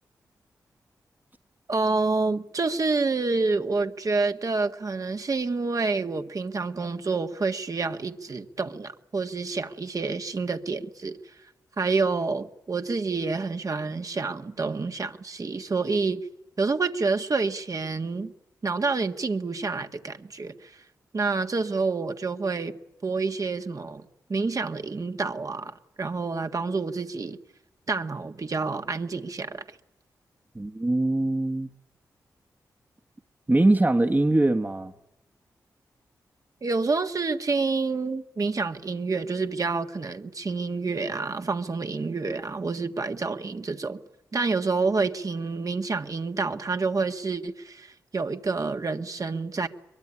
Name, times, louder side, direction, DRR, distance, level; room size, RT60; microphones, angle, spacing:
voice 1, 1.7-11.2 11.8-16.3 16.6-18.3 18.6-20.7 21.1-22.7 23.0-27.4 27.9-29.6 36.6-44.0 44.3-49.7, right 4 dB, 50° right, 1.8 m, -28 dB
voice 2, 30.5-31.7 33.5-34.9, right 2 dB, 25° right, 1.4 m, -22 dB
23.0 x 21.5 x 9.9 m
cardioid pair, 45°, 7 cm